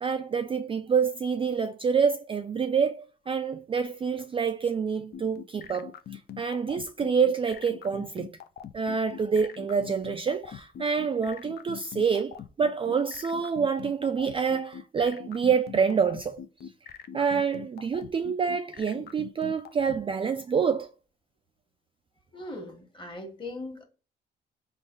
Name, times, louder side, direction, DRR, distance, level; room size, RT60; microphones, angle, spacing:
voice 1, 0.0-8.3 8.7-16.4 17.1-20.9, right 6 dB, 25° right, 0.3 m, -27 dB
sound 1, 5.1-20.0, left 9 dB, 55° left, 0.5 m, -41 dB
voice 2, 22.3-23.8, left 2 dB, 25° left, 1.4 m, -39 dB
3.8 x 2.3 x 3.7 m
cardioid pair, 90°, 20 cm